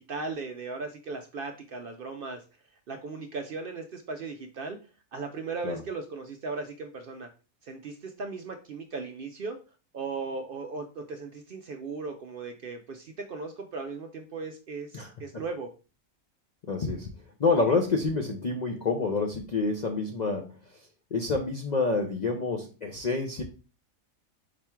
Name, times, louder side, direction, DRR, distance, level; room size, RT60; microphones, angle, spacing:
voice 1, 0.0-2.4 2.9-4.8 5.1-7.3 7.6-9.6 9.9-15.7, right 4 dB, 60° right, 5 dB, 0.5 m, -37 dB
voice 2, 14.9-15.4 16.7-17.1 17.4-20.8 21.1-23.4, left 3 dB, 60° left, 2 dB, 0.4 m, -28 dB
5.0 x 2.3 x 4.3 m, 0.34 s
omnidirectional pair, 1.4 m